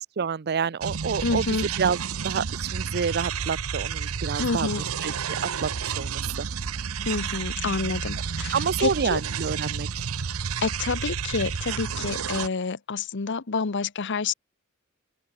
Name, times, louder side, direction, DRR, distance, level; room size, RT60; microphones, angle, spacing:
voice 1, 0.2-2.0 2.2-4.7 5.0-6.5 8.5-10.0, right 6 dB, 50° right, 0.5 m, -28 dB
sound 1, 0.8-12.5, right 6 dB, 90° right, 0.8 m, -31 dB
voice 2, 1.2-1.7 4.4-4.8 7.1-9.2 10.6-14.3, left 4 dB, 60° left, 0.9 m, -28 dB
open air
head